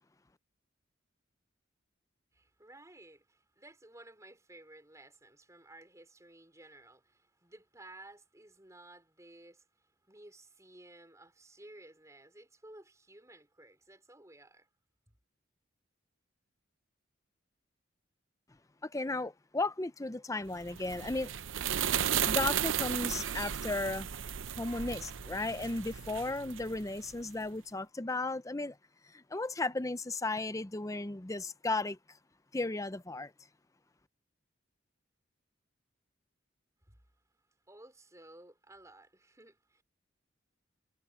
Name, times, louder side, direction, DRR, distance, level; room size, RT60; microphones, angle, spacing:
voice 1, 2.3-14.7 36.9-37.0 37.7-39.8, right 1 dB, 15° right, 5.0 m, -55 dB
voice 2, 18.8-21.3 22.2-24.1 24.6-28.8 29.1-32.0 32.5-33.3, left 2 dB, 15° left, 0.6 m, -35 dB
sound 1, 20.6-27.2, right 9 dB, 80° right, 0.7 m, -34 dB
head